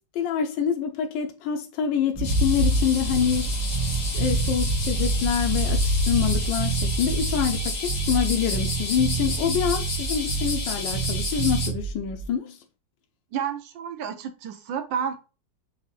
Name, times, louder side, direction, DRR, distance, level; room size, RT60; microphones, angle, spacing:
voice 1, 0.1-3.6 4.1-12.6, left 8 dB, 90° left, 1.3 m, -26 dB
sound 1, 2.1-12.3, right 1 dB, 5° right, 1.1 m, -28 dB
sound 2, 2.2-11.7, left 3 dB, 30° left, 0.9 m, -32 dB
Bass guitar, 2.2-3.5 3.7-5.9 6.1-8.3 8.5-10.7 10.9-11.8, right 8 dB, 50° right, 0.6 m, -30 dB
voice 2, 13.3-15.3, right 7 dB, 85° right, 1.5 m, -30 dB
6.4 x 2.7 x 3.1 m
omnidirectional pair, 2.0 m